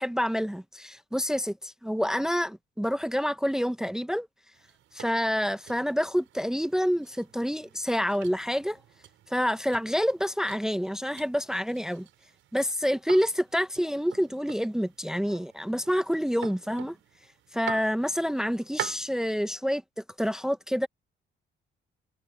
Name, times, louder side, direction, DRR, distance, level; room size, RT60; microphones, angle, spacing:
voice 1, 0.0-4.3 4.9-8.8 9.3-12.1 12.5-17.0 17.5-19.8 20.2-20.9, equal, 5° right, 0.8 m, -28 dB
sound 1, 4.5-19.2, right 13 dB, 80° right, 5.7 m, -45 dB
cardioid pair, 90°, 20 cm